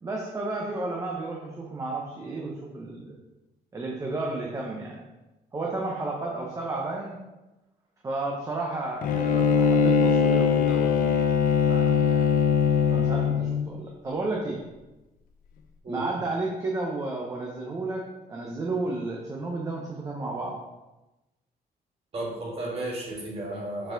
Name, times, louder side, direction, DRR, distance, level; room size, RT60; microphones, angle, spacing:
voice 1, 0.0-3.2 3.7-5.1 5.5-7.2 8.0-11.1 11.7-12.3 12.9-14.6 15.9-20.6, right 2 dB, 20° right, -1 dB, 0.7 m, -32 dB
Bowed string instrument, 9.0-13.7, left 6 dB, 55° left, 0.6 m, -21 dB
voice 2, 22.1-23.9, right 1 dB, 35° right, -3 dB, 1.6 m, -33 dB
6.3 x 4.7 x 3.8 m, 1.0 s
cardioid pair, 180°, 17 cm